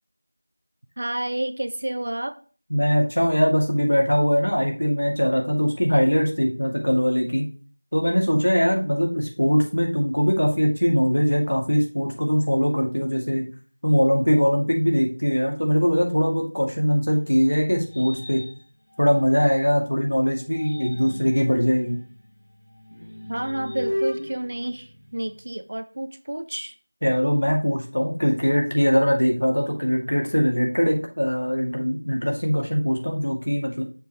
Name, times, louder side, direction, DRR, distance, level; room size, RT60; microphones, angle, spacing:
voice 1, 1.0-2.4 23.3-26.7, right 1 dB, 30° right, 10 dB, 0.4 m, -30 dB
voice 2, 2.7-7.5 7.9-13.4 13.8-18.4 19.0-22.0 27.0-33.8, equal, 70° left, 1 dB, 2.5 m, -21 dB
sound 1, 16.7-19.9 20.4-25.6, equal, 35° left, 1.1 m, -36 dB
6.6 x 5.3 x 3.1 m, 0.38 s
figure-of-eight pair, 180°, 0 cm